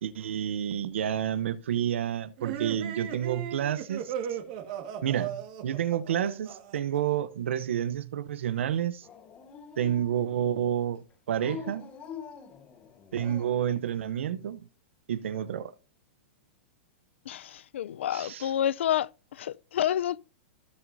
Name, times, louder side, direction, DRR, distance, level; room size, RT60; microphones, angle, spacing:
voice 1, 0.0-4.4 5.0-9.1 9.8-11.9 13.1-14.7 15.1-15.7 18.1-18.5, right 10 dB, 90° right, 0.7 m, -30 dB
sound 1, 2.4-7.0, right 9 dB, 40° right, 1.6 m, -37 dB
Dog, 9.0-10.5 11.3-13.7, left 7 dB, 20° left, 0.9 m, -45 dB
voice 2, 17.3-20.2, left 11 dB, 80° left, 0.4 m, -29 dB
16.0 x 6.1 x 2.6 m
supercardioid pair, 165°, 6 cm